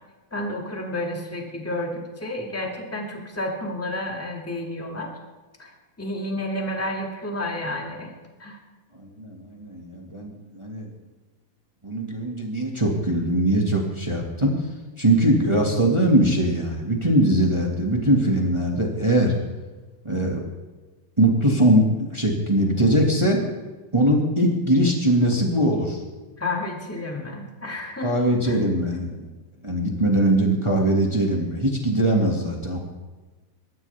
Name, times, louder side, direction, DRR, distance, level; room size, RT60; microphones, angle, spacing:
voice 1, 0.3-5.2 5.6-5.7 6.0-8.1 8.4-8.6 26.4-28.1 28.4-28.6, left 1 dB, 5° left, 0 dB, 1.5 m, -30 dB
voice 2, 8.9-10.9 11.8-14.7 15.0-19.3 20.0-20.4 21.2-23.4 23.9-26.0 28.0-29.2 29.6-32.8, right 1 dB, 15° right, 0 dB, 0.9 m, -21 dB
26.0 x 14.0 x 3.5 m, 1.2 s
omnidirectional pair, 4.2 m